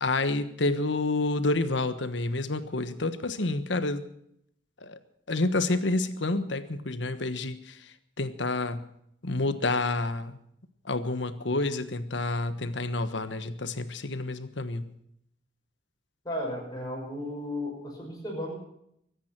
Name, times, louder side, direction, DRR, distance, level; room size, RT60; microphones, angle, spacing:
voice 1, 0.0-4.0 4.8-5.0 5.3-7.8 8.2-8.9 9.2-10.4 10.9-14.9, left 2 dB, 75° left, 11 dB, 1.3 m, -29 dB
voice 2, 16.2-18.6, left 1 dB, 20° left, -1 dB, 6.0 m, -34 dB
23.5 x 9.7 x 6.0 m, 0.73 s
head